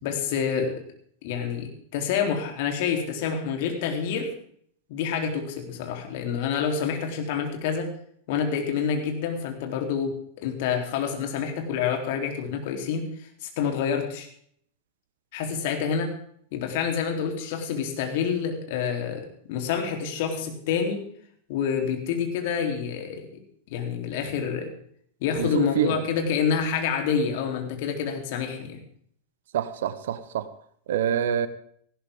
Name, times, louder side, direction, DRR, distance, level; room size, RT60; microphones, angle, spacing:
voice 1, 0.0-0.7 1.2-4.3 4.9-7.9 8.3-10.1 10.4-14.3 15.3-16.1 16.5-19.2 19.5-21.0 21.5-23.3 23.7-24.7 25.2-28.8, left 7 dB, 55° left, 3 dB, 3.6 m, -27 dB
voice 2, 25.4-25.9 29.5-30.5 30.9-31.5, right 9 dB, 60° right, 13 dB, 1.1 m, -26 dB
18.5 x 15.5 x 3.8 m, 0.62 s
figure-of-eight pair, 90°, 0 cm